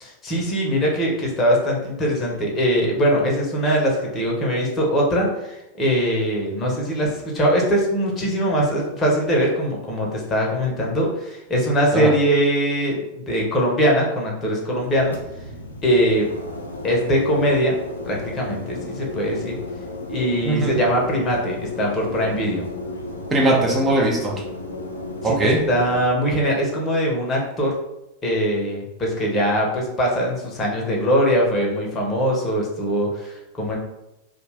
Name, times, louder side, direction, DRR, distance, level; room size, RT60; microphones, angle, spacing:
voice 1, 0.0-15.2 15.8-16.3 16.8-19.6 20.1-22.7 25.2-27.8 28.2-33.8, equal, 25° left, -2 dB, 0.8 m, -22 dB
sound 1, 14.8-26.1, left 2 dB, 70° left, 0.4 m, -33 dB
voice 2, 20.4-20.8 23.3-24.4 25.2-25.6, right 2 dB, 15° right, -1 dB, 0.6 m, -20 dB
2.3 x 2.2 x 3.3 m, 0.90 s
figure-of-eight pair, 90°, 0 cm